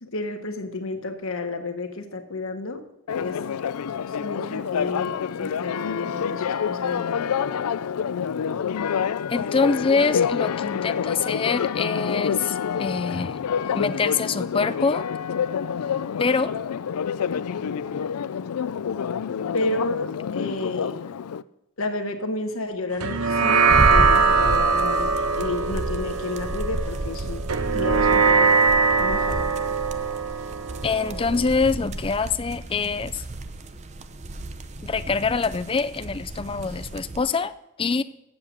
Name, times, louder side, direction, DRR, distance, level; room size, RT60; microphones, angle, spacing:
voice 1, 0.0-2.8 3.2-3.4 4.1-7.6 19.5-21.0 21.8-27.4 27.7-28.5 28.9-29.4, left 2 dB, 65° left, 5 dB, 1.3 m, -31 dB
Church bell, 3.1-21.4, left 7 dB, 85° left, 0.4 m, -27 dB
voice 2, 9.3-13.4 13.7-15.1 16.2-16.5 30.8-33.2 34.8-37.5 37.8-38.0, left 4 dB, 25° left, 13 dB, 0.4 m, -25 dB
sound 1, 23.0-31.7, right 4 dB, 80° right, 1.0 m, -21 dB
sound 2, 23.7-37.2, right 2 dB, 30° right, 0.6 m, -32 dB
8.2 x 7.8 x 7.4 m, 0.88 s
head